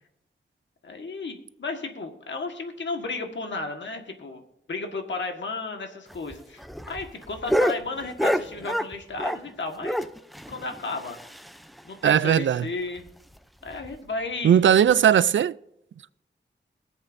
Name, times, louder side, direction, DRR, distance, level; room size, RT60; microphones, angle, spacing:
voice 1, 0.8-4.4 4.7-6.6 6.9-10.1 10.5-11.2 11.8-13.1 13.6-14.6, left 3 dB, 75° left, 1.6 m, -33 dB
sound 1, 6.1-9.5 9.8-11.8 12.1-12.2 12.5-12.6 13.0-13.1 13.7-14.0 14.8-14.9, equal, ahead, 0.5 m, -28 dB
voice 2, 12.0-12.7 14.4-15.5, right 9 dB, 85° right, 0.4 m, -18 dB
22.0 x 8.0 x 2.7 m
wide cardioid pair, 90°, 19 cm